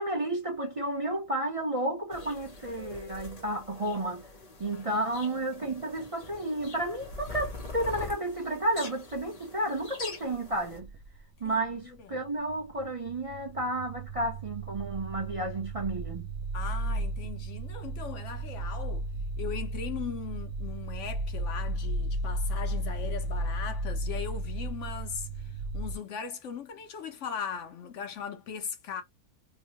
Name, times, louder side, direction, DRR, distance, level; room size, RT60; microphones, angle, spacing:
voice 1, 0.0-4.3 4.6-10.9 11.4-16.3, right 1 dB, 35° right, 0.5 m, -32 dB
sound 1, 2.1-10.8, left 2 dB, 35° left, 0.7 m, -44 dB
sound 2, 10.3-11.9 12.1-26.0, right 1 dB, 65° right, 0.9 m, -34 dB
voice 2, 11.4-12.2 16.5-19.1 19.4-29.0, left 7 dB, 65° left, 0.8 m, -39 dB
3.5 x 2.1 x 2.8 m
omnidirectional pair, 1.6 m